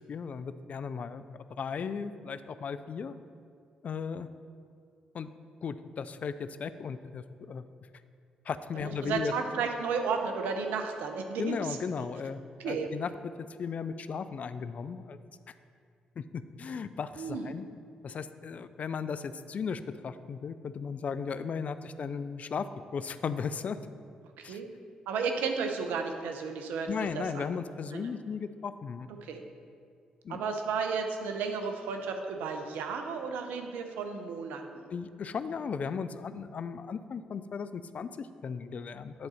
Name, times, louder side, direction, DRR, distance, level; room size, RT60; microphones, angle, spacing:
voice 1, 0.1-3.1 3.8-4.3 5.1-5.3 5.6-7.6 8.5-9.3 11.4-13.1 13.6-15.2 16.2-17.6 18.0-23.8 24.4-24.6 26.9-29.1 30.2-30.5 34.9-39.3, left 6 dB, 50° left, 12 dB, 0.3 m, -36 dB
voice 2, 8.8-11.6 11.9-12.1 12.6-12.9 17.2-17.5 24.4-24.7 25.1-27.4 27.9-28.1 29.2-29.4 30.3-34.8, right 5 dB, 75° right, 5 dB, 0.6 m, -33 dB
9.5 x 3.9 x 4.3 m, 2.3 s
hypercardioid pair, 45°, 3 cm